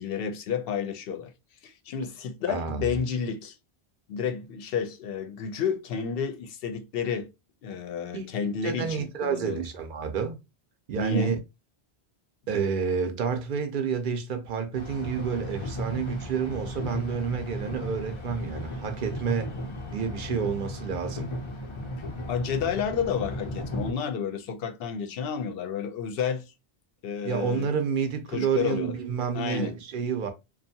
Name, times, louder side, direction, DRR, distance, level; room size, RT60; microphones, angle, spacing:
voice 1, 0.0-1.3 1.6-3.6 4.1-7.3 7.6-9.6 11.0-11.4 22.3-26.5 27.0-27.7 28.3-28.9 29.3-29.8, left 7 dB, 70° left, 0.7 m, -31 dB
voice 2, 2.5-2.9 8.1-8.3 8.6-10.4 10.9-11.4 12.5-19.5 19.9-21.3 27.2-30.3, right 6 dB, 60° right, 0.7 m, -29 dB
sound 1, 14.7-23.9, left 1 dB, 45° left, 0.4 m, -35 dB
2.6 x 2.3 x 2.6 m
omnidirectional pair, 1.1 m